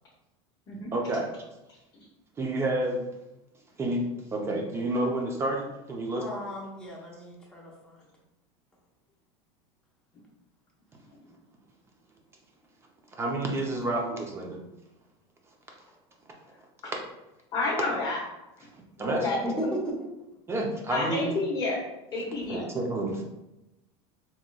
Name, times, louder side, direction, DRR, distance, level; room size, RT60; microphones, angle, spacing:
voice 1, 0.9-1.3 2.4-3.1 3.8-6.2 13.1-14.6 18.7-19.3 20.5-21.3 22.5-23.2, right 2 dB, 20° right, 1 dB, 0.6 m, -29 dB
voice 2, 6.2-8.1 19.4-20.1, equal, 5° left, -3 dB, 0.8 m, -35 dB
voice 3, 17.5-18.2 19.0-19.7 20.9-21.8 22.1-22.7, left 2 dB, 30° left, -6 dB, 0.9 m, -30 dB
3.9 x 3.0 x 2.3 m, 0.95 s
supercardioid pair, 140°, 14 cm